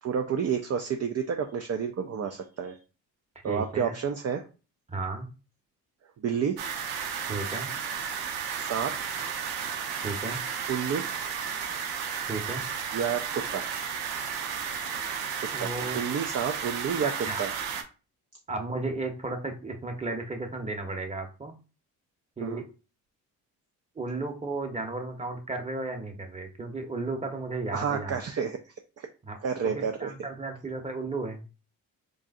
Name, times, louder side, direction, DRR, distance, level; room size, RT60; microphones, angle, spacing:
voice 1, 0.0-2.8 3.4-4.5 6.2-6.6 8.6-9.0 10.7-11.1 12.9-13.7 15.4-17.5 22.4-22.6 27.7-29.1 29.4-30.1, right 7 dB, 40° right, 5 dB, 0.6 m, -30 dB
voice 2, 3.4-3.9 4.9-5.3 7.3-7.7 10.0-10.4 12.3-12.6 15.5-16.0 17.0-17.4 18.5-21.5 22.4-22.7 23.9-28.2 29.3-31.4, right 3 dB, 15° right, 4 dB, 1.0 m, -34 dB
sound 1, 6.6-17.8, right 7 dB, 80° right, 0.8 m, -33 dB
3.8 x 3.7 x 2.6 m, 0.33 s
supercardioid pair, 60°, 39 cm